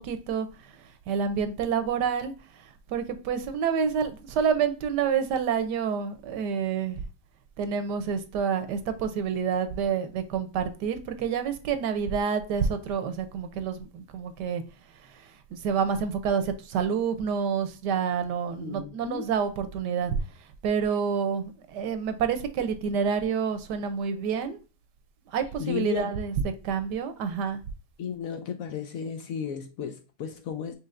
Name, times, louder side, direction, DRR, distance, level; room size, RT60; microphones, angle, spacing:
voice 1, 0.0-7.0 7.6-14.6 15.0-20.2 20.6-24.6 25.3-26.3 26.6-27.6, right 6 dB, 80° right, 1.3 m, -28 dB
voice 2, 18.6-19.3 25.6-26.1 28.0-30.7, left 7 dB, 70° left, 0.9 m, -34 dB
5.6 x 3.4 x 2.4 m
omnidirectional pair, 1.8 m